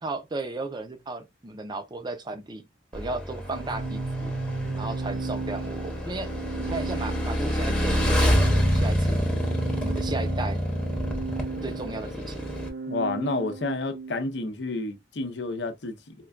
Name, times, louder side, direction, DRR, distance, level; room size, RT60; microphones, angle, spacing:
voice 1, 0.0-2.7 2.9-4.4 4.7-6.3 6.6-9.2 9.8-10.6 11.6-12.4, right 2 dB, 25° right, 0.5 m, -35 dB
Motorcycle / Engine, 2.9-12.7, equal, 5° left, 0.8 m, -27 dB
Organ, 3.5-14.2, right 3 dB, 85° right, 0.8 m, -35 dB
voice 2, 12.9-16.1, left 3 dB, 75° left, 0.6 m, -30 dB
4.4 x 2.2 x 2.4 m
head